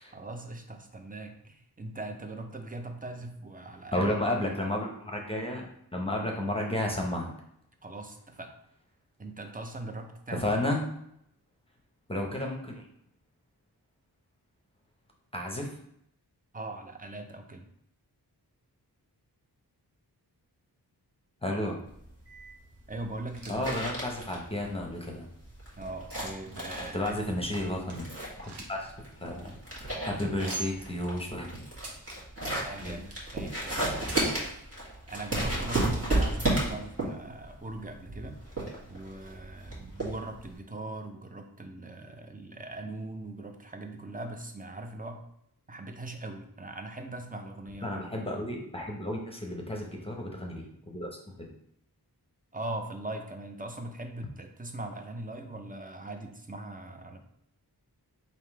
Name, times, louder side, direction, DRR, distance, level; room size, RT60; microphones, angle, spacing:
voice 1, 0.1-4.5 7.8-8.5 9.2-10.5 16.5-17.7 22.9-23.7 25.8-27.4 32.6-34.1 35.1-38.4 38.9-45.2 45.7-48.3 52.5-57.2, right 2 dB, 20° right, 5 dB, 0.6 m, -40 dB
voice 2, 3.9-7.3 10.4-10.8 12.1-12.8 15.3-15.8 21.4-21.8 23.5-25.3 26.9-28.1 28.7-28.9 29.2-29.6 30.0-31.5 32.8-33.0 47.8-51.5, left 1 dB, 15° left, 0 dB, 0.8 m, -32 dB
sound 1, 21.9-40.5, right 1 dB, 35° right, 1.6 m, -33 dB
sound 2, 23.1-23.8 24.1-24.2 24.9-25.0 25.7-27.1 27.6-27.7 27.9-28.9 29.2-29.3 29.6-29.8 30.5-30.9 31.8-32.2 32.8-33.3 34.0-34.4 35.4-35.5 35.7-35.8 36.6-36.7, right 4 dB, 90° right, 0.9 m, -43 dB
3.6 x 2.8 x 4.6 m, 0.72 s
wide cardioid pair, 65°, 39 cm